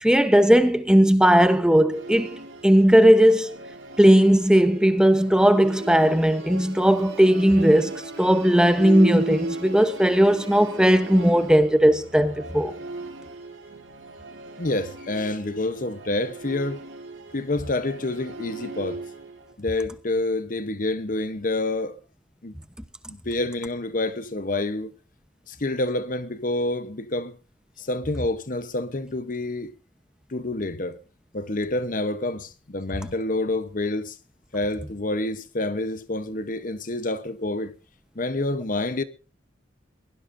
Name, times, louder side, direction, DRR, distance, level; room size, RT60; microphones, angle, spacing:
voice 1, 0.0-2.3 2.6-3.6 4.0-12.7, equal, 5° right, 1.0 m, -17 dB
Musical instrument, 1.9-19.5, right 2 dB, 85° right, 3.8 m, -37 dB
voice 2, 14.6-16.9 17.3-19.0 19.6-22.0 22.4-22.6 23.1-24.9 25.5-27.4 27.8-29.8 30.3-31.0 31.3-34.2 34.5-37.7 38.2-39.0, left 2 dB, 45° left, 1.0 m, -28 dB
22.5 x 16.5 x 2.7 m
head